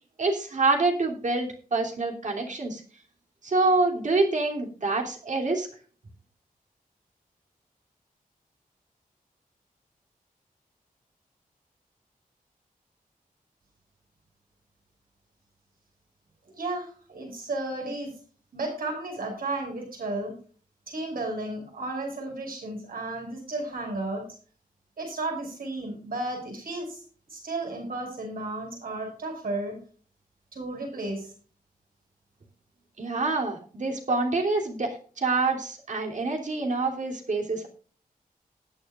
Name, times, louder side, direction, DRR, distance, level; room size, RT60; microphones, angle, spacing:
voice 1, 0.2-2.8 3.4-5.7 33.0-37.7, right 3 dB, 55° right, 1 dB, 3.0 m, -26 dB
voice 2, 16.6-18.1 18.5-20.3 20.9-24.2 25.0-27.0 27.3-29.8 30.5-31.3, right 2 dB, 75° right, 1 dB, 5.9 m, -33 dB
19.5 x 9.1 x 2.5 m, 0.40 s
wide cardioid pair, 145°, 15 cm